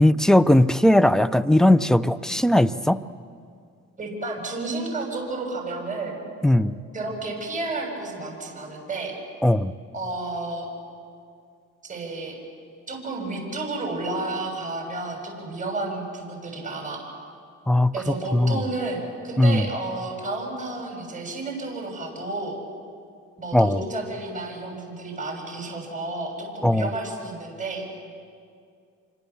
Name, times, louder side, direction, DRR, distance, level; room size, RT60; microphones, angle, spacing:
voice 1, 0.0-3.0 6.4-6.8 9.4-9.7 17.7-17.9 18.3-18.6 19.4-19.7 23.5-23.8 26.6-26.9, left 1 dB, ahead, 15 dB, 0.7 m, -18 dB
voice 2, 4.0-6.2 6.9-9.1 9.9-10.7 11.8-12.4 12.9-17.1 17.9-22.6 23.4-27.8, right 2 dB, 25° right, 0 dB, 7.0 m, -31 dB
27.0 x 26.0 x 7.2 m, 2.3 s
cardioid pair, 90°, 30 cm